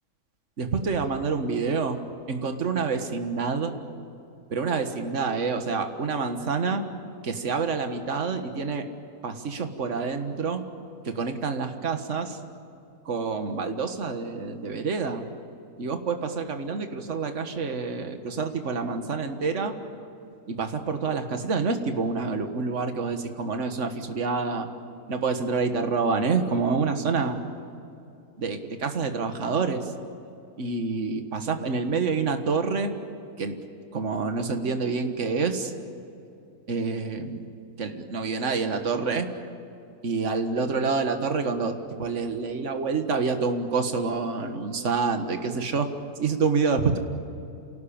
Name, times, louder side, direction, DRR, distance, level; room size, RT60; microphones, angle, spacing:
voice 1, 0.6-2.0 2.3-3.7 4.5-6.8 7.2-8.9 9.2-10.6 11.0-12.4 13.1-15.2 15.8-19.8 20.5-24.7 25.1-27.4 28.4-29.9 30.6-32.9 33.4-33.5 33.9-35.7 36.7-37.4 37.8-39.3 40.0-45.9 46.2-47.0, right 4 dB, 50° right, 6 dB, 1.8 m, -27 dB
28.5 x 18.0 x 8.7 m, 2.7 s
omnidirectional pair, 1.6 m